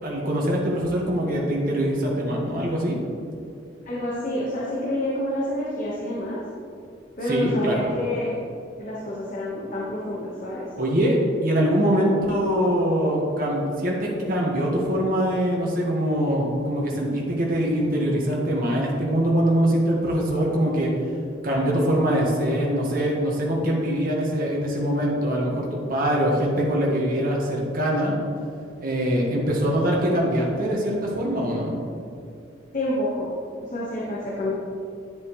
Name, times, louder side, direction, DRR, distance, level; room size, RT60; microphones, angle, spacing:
voice 1, 0.0-3.0 7.2-7.9 10.7-20.9 21.4-28.1 28.8-31.8, equal, 50° right, -3 dB, 1.5 m, -23 dB
voice 2, 3.9-6.4 7.2-8.3 8.6-10.7 32.7-33.3 33.7-34.5, left 1 dB, 45° left, -6 dB, 1.3 m, -28 dB
10.5 x 7.3 x 3.1 m, 2.4 s
head